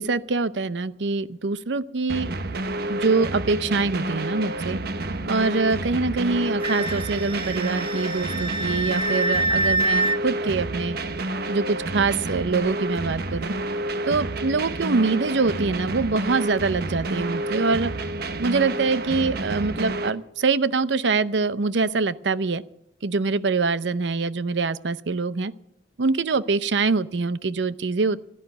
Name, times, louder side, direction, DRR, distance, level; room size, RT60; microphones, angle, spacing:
voice 1, 0.0-2.3 2.9-4.8 5.3-11.0 11.5-13.5 14.1-17.9 18.4-22.6 23.0-25.5 26.0-28.2, right 4 dB, 80° right, 16 dB, 0.7 m, -24 dB
sound 1, 2.1-20.1, right 1 dB, 60° right, 1.2 m, -29 dB
Wind instrument woodwind instrument, 6.6-10.2, right 2 dB, 30° right, 0.8 m, -26 dB
15.5 x 11.0 x 7.9 m, 0.84 s
head